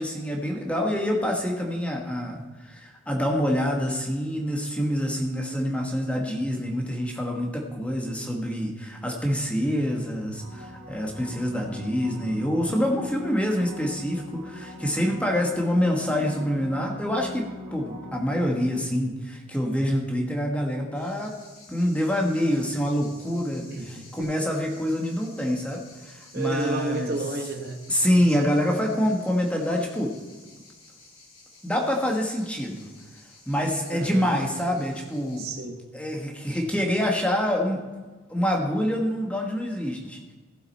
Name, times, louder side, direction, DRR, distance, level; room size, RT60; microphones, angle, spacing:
voice 1, 0.0-21.3 21.7-27.2 27.9-30.1 31.6-32.9 33.5-35.4 35.9-37.8 38.3-40.2, equal, 5° left, 1 dB, 1.3 m, -26 dB
voice 2, 7.8-8.1 23.7-24.5 26.3-28.3 33.9-34.3 35.4-35.8, right 2 dB, 50° right, 4 dB, 1.2 m, -33 dB
space organ, 10.2-18.9 24.2-24.3, equal, 70° right, 2.4 m, -41 dB
sound 1, 20.9-35.4, left 2 dB, 90° left, 4.0 m, -52 dB
15.5 x 7.7 x 4.1 m, 1.3 s
head